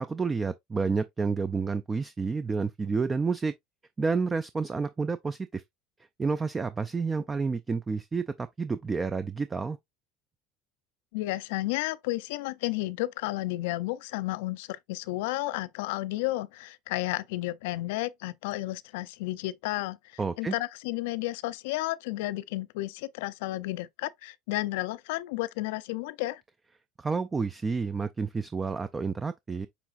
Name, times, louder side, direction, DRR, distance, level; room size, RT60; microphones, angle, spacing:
voice 1, 0.1-3.5 4.0-5.6 6.2-9.8 20.2-20.6 27.0-29.7, right 4 dB, 20° right, 0.4 m, -30 dB
voice 2, 11.1-20.0 20.4-26.4, left 18 dB, 70° left, 0.4 m, -32 dB
7.0 x 3.0 x 2.4 m
hypercardioid pair, 70°, 0 cm